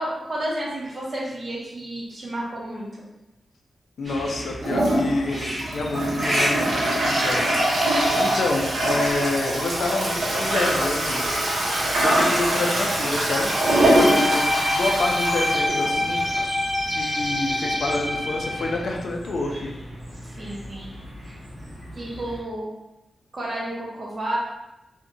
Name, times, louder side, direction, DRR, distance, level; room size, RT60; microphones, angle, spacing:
voice 1, 0.0-3.0 14.0-14.2 20.4-20.9 22.0-22.7 23.3-24.4, right 1 dB, 40° right, -5 dB, 0.7 m, -31 dB
voice 2, 4.0-7.4 8.2-11.3 12.0-16.2 16.9-19.7, left 2 dB, 65° left, 1 dB, 0.3 m, -28 dB
sound 1, 4.0-22.4, equal, 20° right, 1.0 m, -35 dB
Toilet flush, 4.6-16.4, right 1 dB, 85° right, 0.7 m, -23 dB
Bowed string instrument, 13.4-18.8, left 1 dB, 20° left, 0.9 m, -26 dB
2.7 x 2.1 x 2.5 m, 0.96 s
wide cardioid pair, 160°, 0 cm